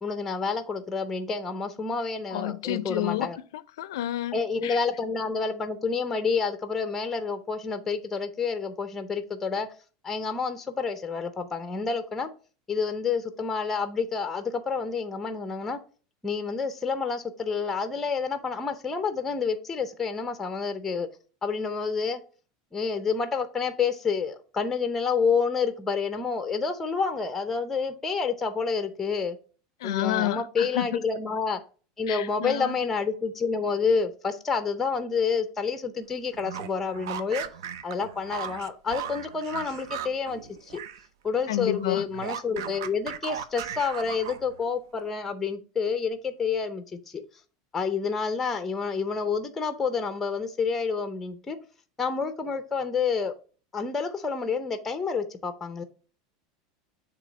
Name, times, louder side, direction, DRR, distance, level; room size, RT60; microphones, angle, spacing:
voice 1, 0.0-3.4 4.3-9.7 10.0-12.3 12.7-15.8 16.2-21.1 21.4-22.2 22.7-29.4 29.8-31.6 32.0-37.4 37.8-40.8 41.2-47.2 47.7-51.6 52.0-53.3 53.7-55.8, left 5 dB, 10° left, 0.5 m, -29 dB
voice 2, 2.3-3.3 3.8-4.8 29.8-31.0 32.1-32.8 41.5-42.1, left 14 dB, 90° left, 0.4 m, -30 dB
sound 1, 36.3-41.1 41.3-44.6, right 9 dB, 75° right, 0.6 m, -37 dB
6.8 x 2.8 x 5.2 m
supercardioid pair, 175°, 2 cm